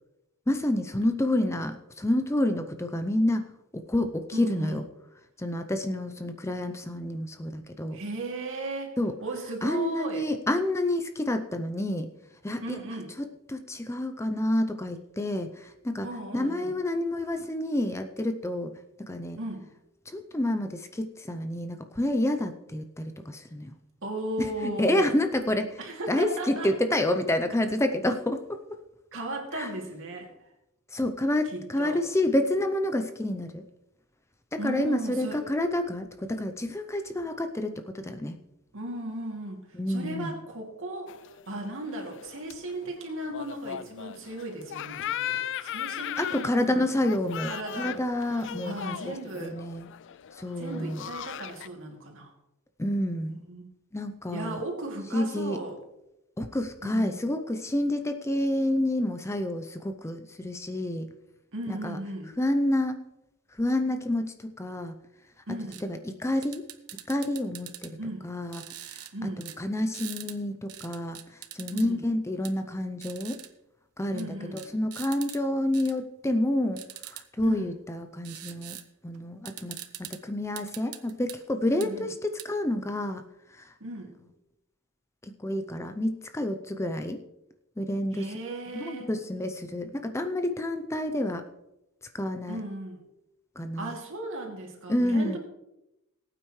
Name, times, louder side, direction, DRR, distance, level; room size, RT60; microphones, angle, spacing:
voice 1, 0.5-4.8 5.4-8.0 9.0-9.2 9.6-12.1 12.4-12.8 13.5-16.1 16.3-18.7 19.0-19.4 20.1-23.7 24.4-25.8 26.1-28.6 29.5-29.7 30.9-33.6 34.5-38.4 39.8-40.4 46.2-49.9 50.3-51.0 52.8-53.4 53.9-54.6 55.1-55.6 56.4-61.1 61.7-62.0 62.4-63.0 63.5-64.9 65.8-66.6 67.1-68.0 68.2-68.6 69.4-73.4 74.0-76.8 77.1-78.8 79.0-79.8 80.1-83.2 83.5-83.7 85.2-87.2 87.8-88.3 88.7-91.4 92.1-92.6 93.6-93.9 94.9-95.4, left 1 dB, 10° left, 7 dB, 0.6 m, -29 dB
voice 2, 4.3-4.8 7.9-10.3 12.6-13.1 16.0-16.8 19.4-19.7 24.0-25.1 25.8-26.7 29.1-30.3 31.5-32.0 34.6-35.4 38.7-39.6 39.9-41.1 41.5-46.8 47.4-48.0 48.3-49.6 50.6-52.3 53.3-53.6 54.3-55.8 56.8-57.3 61.5-62.3 65.5-65.8 68.0-68.3 69.1-69.5 71.7-72.0 74.1-74.6 77.4-77.7 81.7-82.1 83.8-84.1 88.1-89.1 92.5-93.0 93.8-95.4, right 1 dB, 60° right, 1 dB, 2.6 m, -36 dB
sound 1, 41.1-51.7, left 11 dB, 55° left, 0.4 m, -38 dB
sound 2, 65.7-65.8 66.4-67.9 68.5-69.1 69.4-69.6 69.9-70.4 70.7-71.9 72.4-72.5 73.0-73.5 74.2-74.3 74.6-75.4 75.7-75.9 76.8-77.2 78.2-78.8 79.1-79.2 79.5-80.2 80.6-81.4 81.8-81.9 82.4-82.5, right 13 dB, 85° right, 0.9 m, -42 dB
20.0 x 8.9 x 3.2 m, 0.90 s
head